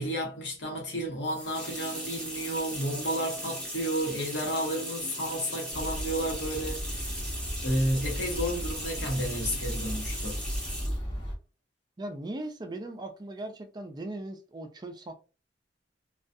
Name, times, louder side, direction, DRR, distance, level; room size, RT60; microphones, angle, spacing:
voice 1, 0.0-7.2 7.6-10.4, equal, 80° left, 1.0 m, -32 dB
sound 1, 1.2-11.0, equal, 5° left, 0.9 m, -38 dB
sound 2, 5.7-11.3, equal, 30° left, 1.0 m, -35 dB
voice 2, 12.0-15.1, right 1 dB, 25° right, 0.4 m, -38 dB
2.3 x 2.3 x 2.5 m
head